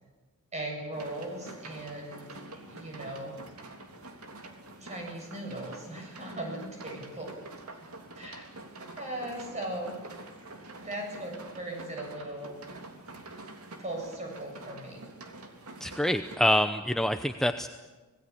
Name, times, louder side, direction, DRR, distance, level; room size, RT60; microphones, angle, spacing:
voice 1, 0.5-3.4 4.8-7.3 7.8-7.9 8.1-8.5 9.0-9.9 10.8-12.6 13.8-15.0, right 1 dB, 30° right, 2 dB, 7.8 m, -38 dB
sound 1, 0.9-16.4, right 2 dB, 80° right, 3.3 m, -46 dB
voice 2, 15.8-17.7, left 1 dB, ahead, 7 dB, 0.7 m, -26 dB
26.5 x 19.0 x 8.7 m, 1.2 s
head